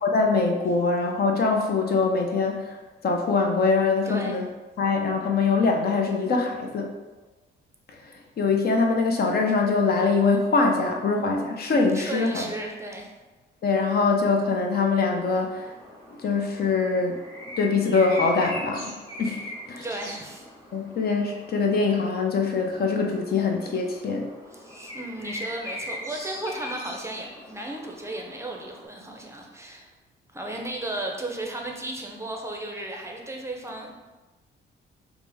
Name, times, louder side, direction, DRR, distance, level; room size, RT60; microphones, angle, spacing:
voice 1, 0.0-2.8 3.0-4.4 4.8-6.9 8.4-12.4 13.6-15.7 16.1-17.2 17.6-18.9 19.2-19.4 19.7-19.8 20.7-24.3, left 4 dB, 50° left, 2 dB, 0.6 m, -23 dB
voice 2, 4.1-4.4 11.9-13.1 19.8-20.5 24.5-29.9 30.3-34.0, right 1 dB, 15° right, 1 dB, 0.6 m, -35 dB
sound 1, 15.1-28.9, left 1 dB, 20° left, 1.4 m, -40 dB
4.9 x 2.1 x 3.4 m, 1.2 s
cardioid pair, 90°, 20 cm